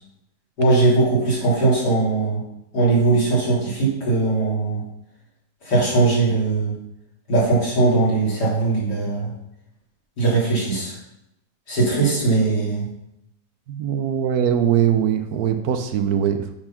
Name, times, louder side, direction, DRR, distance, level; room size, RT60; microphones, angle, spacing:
voice 1, 0.6-2.4 2.7-4.8 5.6-6.7 7.3-9.3 10.2-11.0 11.7-12.9, right 3 dB, 75° left, -7 dB, 3.9 m, -20 dB
voice 2, 13.7-16.5, right 9 dB, 70° right, 8 dB, 1.1 m, -21 dB
8.6 x 4.3 x 5.8 m, 0.84 s
omnidirectional pair, 1.8 m